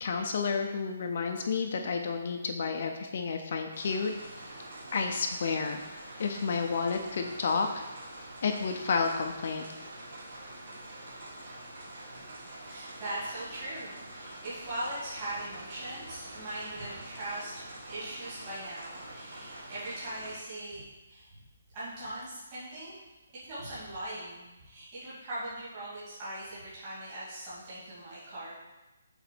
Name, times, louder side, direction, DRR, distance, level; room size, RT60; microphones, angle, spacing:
voice 1, 0.0-4.1 4.9-5.8 6.2-7.8 8.4-9.6, left 5 dB, 40° left, 4 dB, 0.6 m, -30 dB
sound 1, 3.7-20.4, right 1 dB, 45° right, 2.1 m, -46 dB
voice 2, 12.5-20.8 21.1-21.3 21.7-23.0 23.4-28.5, right 1 dB, 20° right, -11 dB, 2.1 m, -40 dB
6.8 x 3.9 x 6.1 m, 1.1 s
hypercardioid pair, 180°, 0 cm